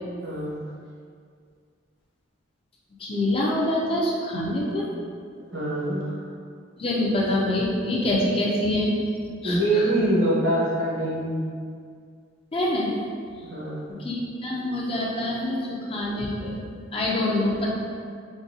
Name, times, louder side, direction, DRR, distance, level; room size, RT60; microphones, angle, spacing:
voice 1, 0.2-0.6 5.5-6.2 9.4-11.4 13.4-13.9, right 1 dB, 70° right, -6 dB, 1.0 m, -24 dB
voice 2, 3.0-4.8 6.8-8.9 9.4-9.9 12.5-12.9 14.0-16.6 16.9-17.7, left 1 dB, 30° left, -4 dB, 0.4 m, -25 dB
3.8 x 2.7 x 2.6 m, 2.2 s
head